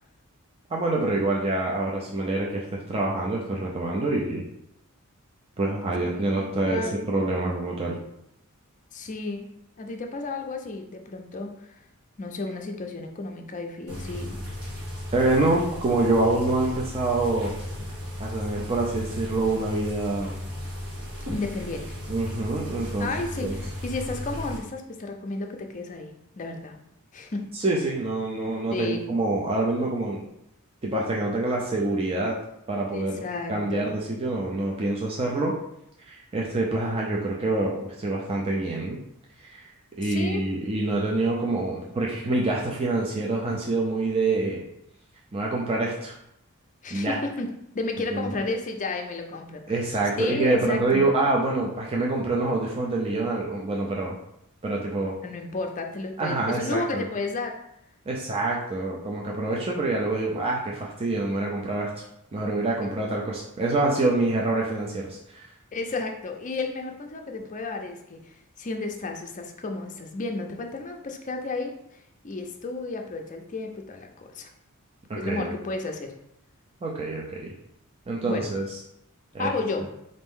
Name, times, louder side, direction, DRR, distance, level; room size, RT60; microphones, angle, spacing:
voice 1, 0.7-2.6 2.9-4.4 5.6-8.0 15.1-17.5 18.2-20.3 22.1-23.1 23.4-23.5 27.5-30.2 30.8-32.4 32.7-33.2 33.5-35.5 36.1-39.0 39.5-39.6 40.0-44.6 45.3-46.1 46.9-47.2 48.1-48.3 49.7-54.2 54.6-55.1 56.2-57.0 58.1-62.0 62.3-65.4 75.1-75.5 76.8-77.5 78.1-78.6 79.3-79.5, right 2 dB, 25° right, -3 dB, 0.4 m, -26 dB
voice 2, 6.0-7.1 8.9-9.5 9.8-11.8 12.2-14.4 21.3-21.8 23.0-26.1 26.4-26.8 27.1-27.4 28.7-29.1 32.9-33.9 40.0-40.4 46.8-47.5 47.7-49.9 50.2-51.0 55.2-57.6 65.7-74.5 75.2-76.1 78.3-78.5 79.4-79.9, left 3 dB, 35° left, 3 dB, 0.5 m, -32 dB
sound 1, 13.9-24.6, equal, 85° right, 1.4 m, -35 dB
4.2 x 2.6 x 3.6 m, 0.78 s
head